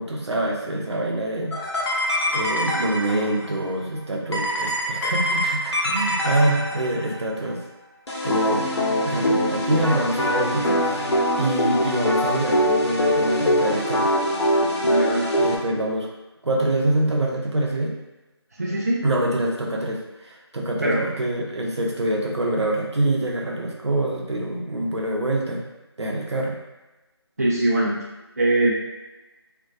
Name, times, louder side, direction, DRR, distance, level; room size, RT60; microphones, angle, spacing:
voice 1, 0.0-1.5 2.3-7.6 8.2-8.7 9.0-11.1 11.4-14.1 15.4-16.1 16.4-18.0 19.0-25.6 26.0-26.6, right 1 dB, 85° right, -1 dB, 0.6 m, -25 dB
sound 1, 1.5-3.5 4.3-7.1 8.1-15.6, equal, 80° left, 0.7 m, -23 dB
voice 2, 14.8-15.3 18.6-19.0 20.7-21.1 27.4-28.0 28.4-28.7, right 1 dB, 35° right, -4 dB, 0.3 m, -22 dB
2.2 x 2.2 x 2.5 m, 1.1 s
figure-of-eight pair, 165°, 14 cm